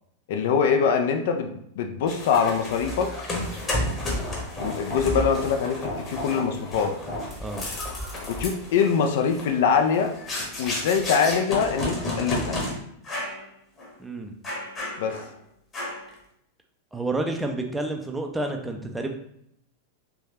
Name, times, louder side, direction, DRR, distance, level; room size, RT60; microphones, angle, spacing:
voice 1, 0.3-3.1 4.6-6.9 8.3-10.1 10.6-12.6 15.0-15.2, left 6 dB, 55° left, 5 dB, 0.4 m, -23 dB
sound 1, 2.1-12.7 13.0-13.4 13.8-13.9 14.4-15.3 15.7-16.1, left 1 dB, 20° left, 1.0 m, -32 dB
voice 2, 14.0-14.3 16.9-19.1, right 2 dB, 10° right, 3 dB, 0.5 m, -29 dB
3.4 x 3.1 x 2.8 m, 0.72 s
figure-of-eight pair, 90°, 0 cm